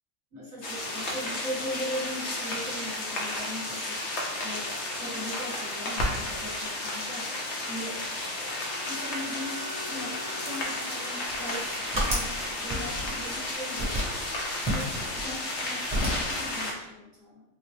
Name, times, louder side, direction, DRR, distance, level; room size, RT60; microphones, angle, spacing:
voice 1, 0.3-4.7 5.0-8.0 8.8-14.4 14.7-17.4, equal, 35° right, -5 dB, 1.3 m, -39 dB
sound 1, 0.6-16.7, left 2 dB, 55° left, 0.9 m, -33 dB
Bowed string instrument, 8.4-12.0, left 1 dB, 75° left, 1.2 m, -44 dB
sound 2, 11.3-12.4 12.7-13.4 13.8-14.2 14.7-15.6 15.9-16.4, equal, 10° right, 0.9 m, -31 dB
4.0 x 2.1 x 3.2 m, 0.91 s
omnidirectional pair, 1.6 m